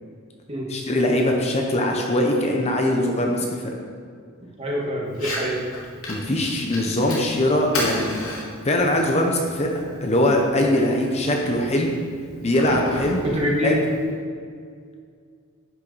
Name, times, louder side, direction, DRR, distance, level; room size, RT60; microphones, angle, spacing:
voice 1, 0.7-3.5 6.1-8.1 8.6-9.7 10.0-11.9 12.4-13.2 13.6-13.7, left 1 dB, 30° left, 1 dB, 0.8 m, -21 dB
voice 2, 4.6-5.6 13.2-13.8, equal, 30° right, -3 dB, 1.8 m, -25 dB
Fire, 5.1-14.1, left 1 dB, 80° left, 2.0 m, -34 dB
10.5 x 6.0 x 4.1 m, 2.1 s
head